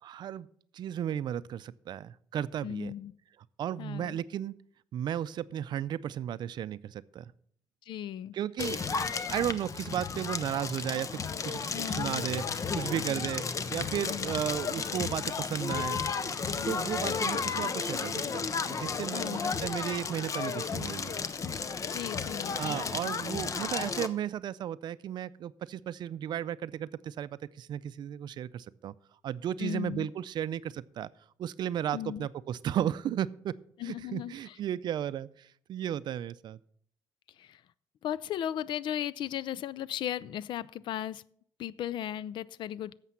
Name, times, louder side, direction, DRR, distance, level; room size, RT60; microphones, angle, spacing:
voice 1, 0.0-0.5 0.7-2.9 3.6-4.5 4.9-7.3 8.3-8.9 9.3-16.0 16.6-21.2 22.3-28.9 29.2-31.1 31.4-33.5 33.8-36.6, right 10 dB, 60° right, 0.4 m, -34 dB
voice 2, 2.6-3.1 3.8-4.2 7.9-8.3 11.7-12.2 13.1-13.3 14.1-14.4 16.5-17.3 19.1-19.5 21.9-22.8 29.6-30.1 31.9-32.3 33.8-34.5 37.4-37.6 38.0-41.2 41.6-43.0, left 10 dB, 70° left, 0.4 m, -37 dB
Crackle, 8.6-24.1, left 5 dB, 40° left, 0.7 m, -33 dB
11.0 x 7.4 x 5.7 m
cardioid pair, 100°, 8 cm